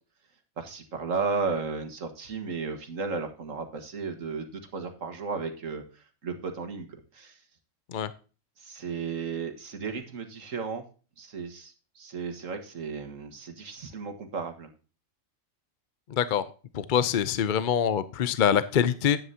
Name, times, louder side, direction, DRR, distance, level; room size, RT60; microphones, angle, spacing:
voice 1, 0.6-7.4 8.6-10.8 11.2-14.7, right 4 dB, 70° right, 6 dB, 1.9 m, -34 dB
voice 2, 16.1-16.4 16.7-19.2, left 8 dB, 55° left, 14 dB, 0.6 m, -24 dB
11.0 x 9.0 x 2.8 m, 0.35 s
omnidirectional pair, 1.4 m